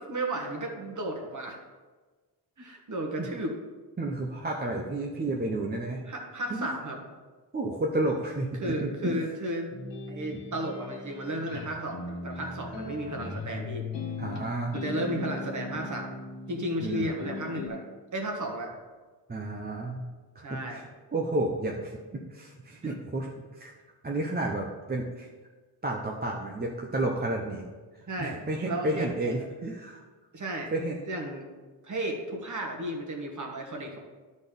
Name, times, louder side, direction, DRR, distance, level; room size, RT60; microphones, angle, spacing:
voice 1, 0.0-1.6 2.6-3.5 6.1-7.0 8.6-9.7 10.1-13.8 14.2-14.3 14.7-16.2 16.5-17.8 18.1-18.7 20.4-20.8 22.8-22.9 28.1-28.4 28.7-29.3 30.3-30.7 31.1-31.5 31.8-34.0, right 1 dB, 40° right, 1 dB, 1.5 m, -34 dB
voice 2, 4.0-6.0 6.5-6.7 7.5-9.2 10.3-10.4 14.2-14.7 16.8-17.1 19.3-20.0 20.4-23.7 24.0-25.3 25.8-27.6 28.2-30.0 30.7-31.0, right 2 dB, 20° right, 0 dB, 0.7 m, -31 dB
sound 1, 9.7-17.7, left 3 dB, 70° left, 1.6 m, -38 dB
12.0 x 4.2 x 5.2 m, 1.3 s
wide cardioid pair, 145°, 44 cm